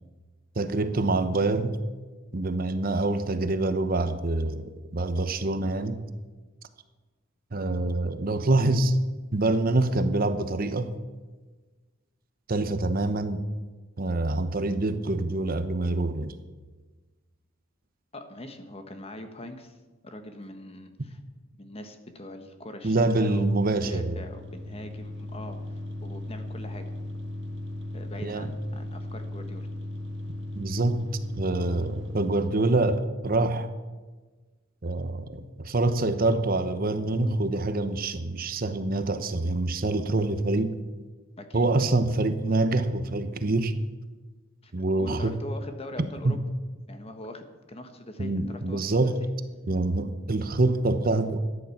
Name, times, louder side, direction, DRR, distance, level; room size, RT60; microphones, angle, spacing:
voice 1, 0.6-1.8 2.3-6.0 7.5-9.0 9.3-10.9 12.5-13.4 14.0-16.3 22.8-24.2 28.2-28.5 30.6-31.0 31.4-33.7 34.8-40.8 41.5-43.8 44.7-45.4 46.0-46.4 48.2-49.2 49.7-51.4, right 2 dB, 45° right, 0.9 m, -26 dB
voice 2, 18.1-19.8 20.0-21.2 21.6-25.6 26.0-26.9 27.9-29.7 41.4-41.7 44.6-44.7 45.0-46.4 46.9-49.3, left 1 dB, 30° left, 1.3 m, -42 dB
sound 1, 23.3-33.0, left 1 dB, 60° right, 1.7 m, -37 dB
13.5 x 10.5 x 7.2 m
head